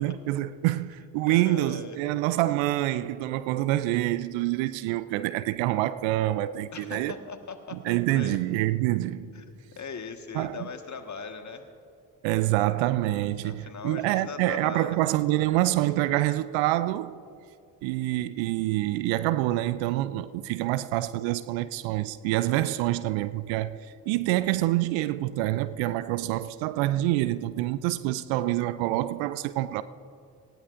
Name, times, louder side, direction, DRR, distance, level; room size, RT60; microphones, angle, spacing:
voice 1, 0.0-7.2 7.7-9.4 10.3-10.7 12.2-17.2 17.8-29.8, right 15 dB, 70° right, 0.6 m, -26 dB
voice 2, 1.3-2.0 6.7-8.4 9.3-9.4 9.7-11.7 13.4-15.0 22.5-22.7, left 5 dB, 35° left, 1.5 m, -40 dB
19.0 x 16.5 x 2.5 m
hypercardioid pair, 45°, 47 cm